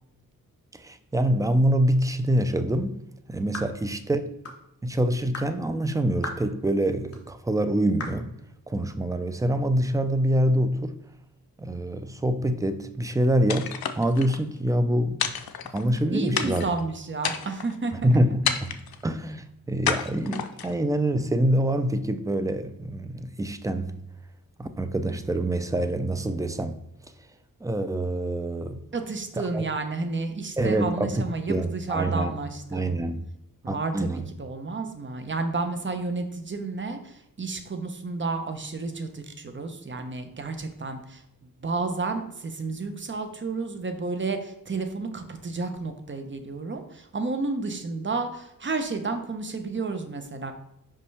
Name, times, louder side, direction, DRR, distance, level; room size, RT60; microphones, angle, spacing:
voice 1, 0.7-3.0 3.3-4.3 4.8-8.3 8.7-11.0 11.6-15.4 15.6-16.6 18.0-18.7 19.0-24.0 24.6-26.8 27.6-28.8 29.5-29.7 30.6-32.4 32.7-33.2 33.7-34.2, right 1 dB, 10° right, 0.4 m, -25 dB
sound 1, 3.5-3.8 4.4-4.6 5.3-5.5 6.2-6.5 7.1-7.2 8.0-8.2, left 2 dB, 40° left, 1.0 m, -36 dB
sound 2, 13.5-14.4 15.2-16.0 16.3-16.8 17.2-17.8 18.4-19.0 19.8-20.8, left 8 dB, 85° left, 0.6 m, -30 dB
voice 2, 16.1-18.1 28.9-33.0 33.6-50.5, right 3 dB, 35° right, 0.8 m, -31 dB
5.4 x 5.2 x 3.3 m
wide cardioid pair, 110°, 35 cm